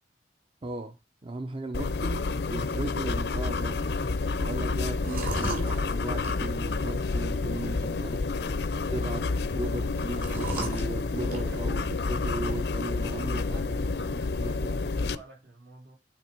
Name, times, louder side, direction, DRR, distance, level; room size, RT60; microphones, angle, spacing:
voice 1, 0.6-1.0 1.2-8.3 8.9-13.8 14.4-14.8, right 2 dB, 30° right, 0.6 m, -37 dB
sound 1, 1.7-15.2, left 3 dB, 65° left, 0.5 m, -29 dB
sound 2, 1.8-13.9, right 2 dB, 50° right, 2.9 m, -41 dB
voice 2, 13.1-16.0, right 2 dB, 75° right, 4.0 m, -51 dB
9.0 x 3.8 x 4.4 m
head